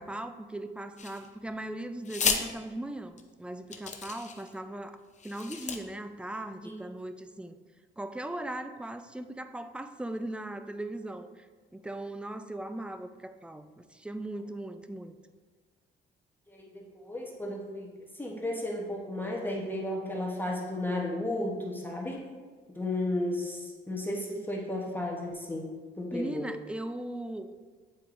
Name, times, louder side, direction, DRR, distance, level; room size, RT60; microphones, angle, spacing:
voice 1, 0.0-5.0 5.2-7.6 8.0-11.5 11.7-15.2 26.1-27.5, right 1 dB, 5° right, 9 dB, 0.3 m, -38 dB
sound 1, 1.0-1.5 2.0-2.4 3.2-3.3 3.7-4.5 5.1-5.8, left 5 dB, 35° left, 0.6 m, -32 dB
voice 2, 16.5-17.9 18.1-22.3 22.7-26.5, left 1 dB, 10° left, -2 dB, 0.9 m, -34 dB
8.3 x 4.5 x 2.5 m, 1.4 s
cardioid pair, 90°, 20 cm